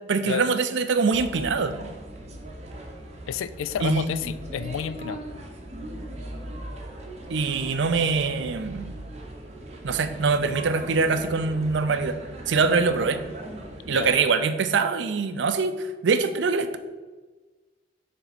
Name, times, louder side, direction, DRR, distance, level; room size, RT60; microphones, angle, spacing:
voice 1, 0.1-1.7 3.8-4.1 7.3-8.9 9.8-12.2 12.5-13.2 13.9-16.8, right 4 dB, 65° right, 10 dB, 0.5 m, -23 dB
sound 1, 1.1-14.2, right 1 dB, 35° right, 0.7 m, -39 dB
voice 2, 3.3-5.2 13.9-14.1, left 7 dB, 85° left, 13 dB, 0.3 m, -30 dB
6.9 x 3.4 x 4.2 m, 1.3 s
head